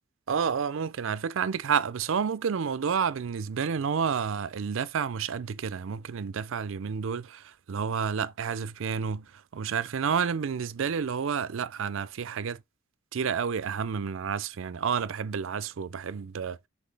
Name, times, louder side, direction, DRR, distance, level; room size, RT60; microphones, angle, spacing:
voice 1, 0.3-12.6 13.1-16.7, right 6 dB, 70° right, 0.4 m, -30 dB
6.0 x 5.8 x 3.3 m
head